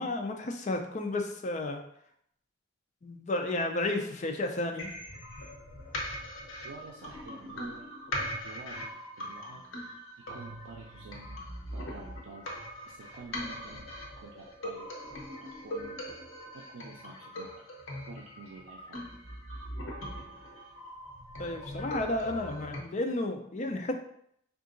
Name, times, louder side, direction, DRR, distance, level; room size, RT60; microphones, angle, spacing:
voice 1, 0.0-1.8 3.0-4.9 21.4-23.9, left 2 dB, 35° left, 3 dB, 0.4 m, -32 dB
sound 1, 4.8-22.8, equal, 75° left, 0.9 m, -41 dB
voice 2, 6.6-7.9 8.4-9.6 10.3-11.4 11.7-12.5 12.9-13.9 14.2-14.9 15.6-16.2 16.5-17.5 18.1-19.0, right 4 dB, 90° right, 0 dB, 0.4 m, -49 dB
3.7 x 2.5 x 3.8 m, 0.70 s
head